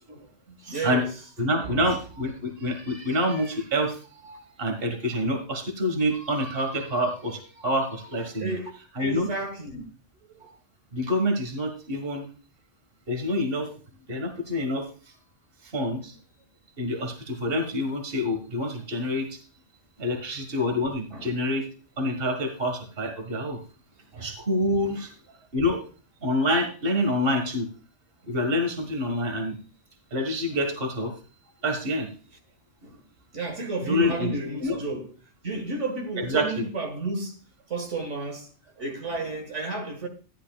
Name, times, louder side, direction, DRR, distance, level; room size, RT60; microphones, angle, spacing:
voice 1, 0.1-1.1 1.6-2.0 8.4-8.7 9.0-9.8 21.1-21.3 25.0-25.1 32.8-33.0 33.3-35.1 35.4-37.4 37.7-38.5 38.8-40.1, right 2 dB, 85° right, 1.9 m, -32 dB
voice 2, 1.4-8.5 9.0-9.3 10.4-10.5 10.9-12.3 13.1-13.7 14.1-14.9 15.7-16.1 16.8-19.4 20.0-21.7 22.0-23.6 24.1-25.1 25.5-25.8 26.2-27.7 28.3-29.6 30.1-31.1 31.6-32.1 33.9-34.3 34.6-34.8 36.2-36.6, left 1 dB, 50° right, 1.8 m, -27 dB
13.0 x 11.0 x 2.3 m
omnidirectional pair, 1.2 m